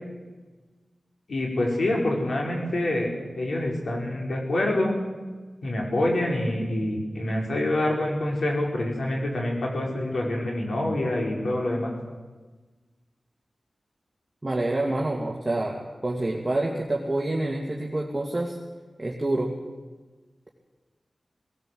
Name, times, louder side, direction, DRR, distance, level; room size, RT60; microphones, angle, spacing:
voice 1, 1.3-3.1 3.4-4.9 5.6-11.9, left 1 dB, 75° left, -1 dB, 5.0 m, -26 dB
voice 2, 14.4-18.6 19.0-19.5, right 2 dB, 25° right, -2 dB, 2.3 m, -27 dB
19.0 x 18.5 x 7.8 m, 1.3 s
wide cardioid pair, 95°, 0 cm